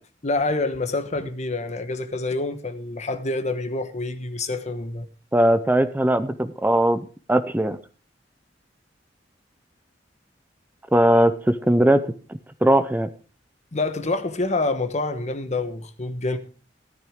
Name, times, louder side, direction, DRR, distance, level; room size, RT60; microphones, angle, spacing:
voice 1, 0.2-5.1 13.7-16.4, left 2 dB, 40° left, 1.1 m, -27 dB
voice 2, 5.3-7.8 10.9-12.0 12.6-13.1, right 1 dB, 10° right, 0.6 m, -19 dB
13.5 x 12.0 x 3.6 m
head